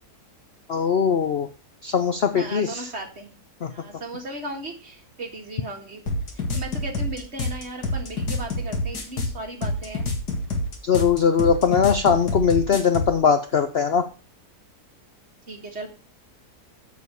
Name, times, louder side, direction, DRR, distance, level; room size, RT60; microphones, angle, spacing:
voice 1, 0.7-1.5 1.8-2.9 3.6-3.7 10.9-14.0, left 6 dB, 55° left, 8 dB, 0.7 m, -20 dB
voice 2, 2.3-3.3 3.7-6.0 6.5-10.1 15.5-15.9, right 2 dB, 40° right, 2 dB, 2.1 m, -36 dB
sound 1, 6.1-13.2, left 2 dB, 80° left, 2.4 m, -27 dB
7.1 x 6.4 x 6.8 m, 0.35 s
omnidirectional pair, 1.7 m